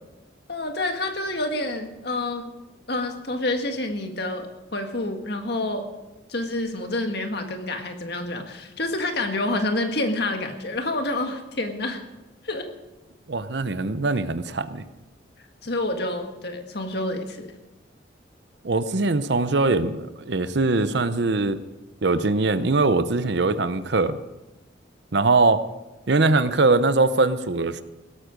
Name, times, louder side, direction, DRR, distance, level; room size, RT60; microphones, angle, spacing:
voice 1, 0.5-2.5 2.9-5.9 6.3-12.0 12.4-12.7 15.6-17.6, left 2 dB, 55° left, 5 dB, 1.7 m, -28 dB
voice 2, 13.3-14.8 18.6-21.6 22.0-24.2 25.1-25.6 26.1-27.8, right 3 dB, 55° right, 13 dB, 0.7 m, -21 dB
17.5 x 13.0 x 5.2 m, 1.0 s
head